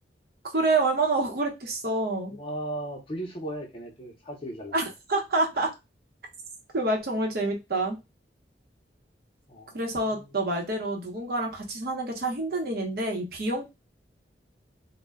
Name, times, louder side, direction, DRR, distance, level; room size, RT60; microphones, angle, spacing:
voice 1, 0.5-2.4 4.7-4.8 5.1-5.7 6.7-8.0 9.7-13.8, right 2 dB, 55° right, 2 dB, 0.8 m, -27 dB
voice 2, 2.3-4.8 5.5-5.7 9.5-9.8 10.1-10.3, right 1 dB, 30° left, 0 dB, 0.6 m, -36 dB
2.1 x 2.1 x 3.4 m, 0.24 s
head